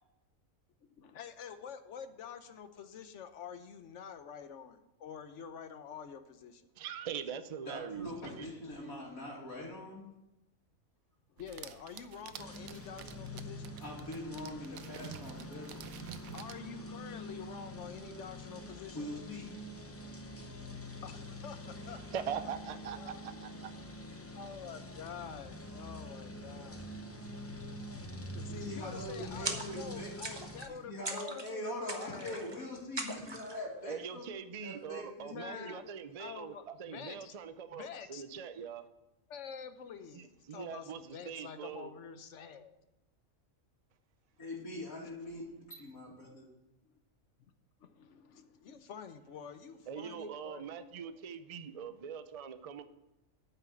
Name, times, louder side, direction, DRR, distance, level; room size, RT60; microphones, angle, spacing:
voice 1, 1.0-6.6 11.4-13.8 16.3-19.1 21.0-22.2 23.0-23.3 24.3-27.0 28.3-32.6 35.3-35.8 36.2-37.4 37.7-38.2 39.3-42.8 46.8-46.9 47.8-51.2, left 7 dB, 65° left, 10 dB, 1.1 m, -47 dB
voice 2, 6.8-8.1 8.4-8.5 22.1-23.7 33.9-38.8 40.5-41.9 49.9-52.8, right 7 dB, 65° right, 10 dB, 0.3 m, -42 dB
voice 3, 7.7-10.1 13.8-15.9 18.9-19.6 28.5-30.1 30.7-34.3 34.6-35.8 44.4-46.4, left 1 dB, 85° left, -5 dB, 2.8 m, -43 dB
sound 1, 11.4-16.6, right 10 dB, 80° right, 1.1 m, -50 dB
sound 2, 12.4-30.7, left 1 dB, 15° left, 0.5 m, -46 dB
sound 3, 29.5-29.9 30.2-30.7 31.1-31.5 31.9-32.6 33.0-33.6, right 2 dB, 25° right, 0.8 m, -40 dB
8.9 x 5.8 x 8.2 m, 0.96 s
omnidirectional pair, 1.4 m